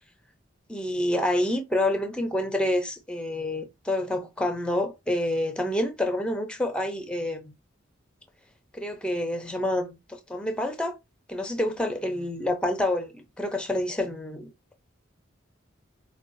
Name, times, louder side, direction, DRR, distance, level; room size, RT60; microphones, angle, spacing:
voice 1, 0.7-7.5 8.7-10.9 11.3-14.5, left 1 dB, 5° left, 0.6 m, -28 dB
4.6 x 2.2 x 2.6 m
head